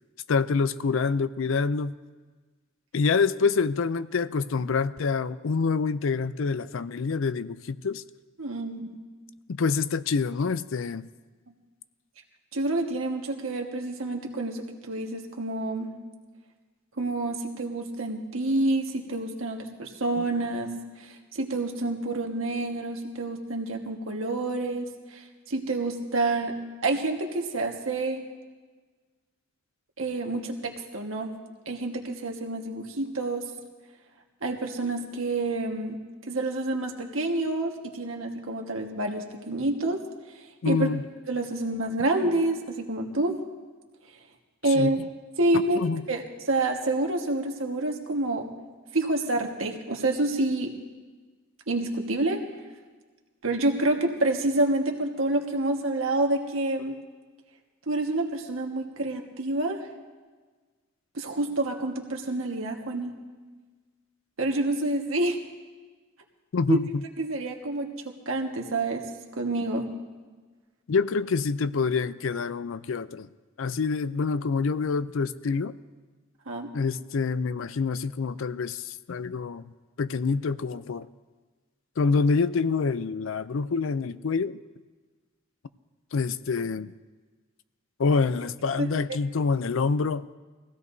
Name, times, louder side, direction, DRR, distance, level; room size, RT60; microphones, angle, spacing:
voice 1, 0.3-1.9 2.9-8.0 9.5-11.1 20.2-20.3 40.6-41.0 44.7-45.0 45.5-46.0 66.5-67.0 70.9-73.3 73.6-75.7 76.7-79.6 80.0-81.1 82.0-84.6 86.1-86.9 88.0-90.3, left 4 dB, 70° left, 15 dB, 0.5 m, -26 dB
voice 2, 8.4-8.9 12.5-15.9 17.0-20.7 21.3-26.5 26.8-28.2 30.0-31.3 31.7-33.4 34.4-36.0 36.3-40.0 40.6-40.9 41.3-43.3 44.6-45.0 45.4-45.8 46.1-48.5 48.9-50.7 51.7-52.4 53.4-57.0 57.9-59.8 61.1-63.1 64.4-65.4 66.7-66.8 67.2-69.0 69.4-69.9 76.5-76.7 88.8-88.9, right 2 dB, 85° right, 2 dB, 1.5 m, -28 dB
22.5 x 16.0 x 2.7 m, 1.4 s
head